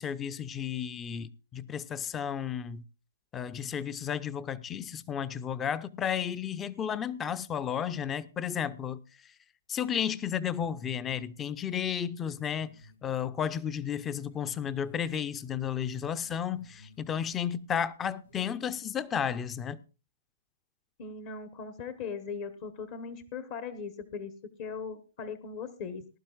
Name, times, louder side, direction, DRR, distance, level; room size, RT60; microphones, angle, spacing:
voice 1, 0.0-2.8 3.3-9.0 9.7-12.7 13.0-19.8, left 8 dB, 15° left, 0.6 m, -33 dB
sound 1, 10.5-11.1 11.5-11.6 11.9-12.0 12.3-14.0 14.3-15.2 15.4-17.1 17.4-17.9 18.2-18.4, left 1 dB, 90° left, 4.0 m, -57 dB
voice 2, 21.0-24.3 24.6-26.1, left 5 dB, 40° left, 1.1 m, -39 dB
19.5 x 11.5 x 2.4 m
hypercardioid pair, 140°, 0 cm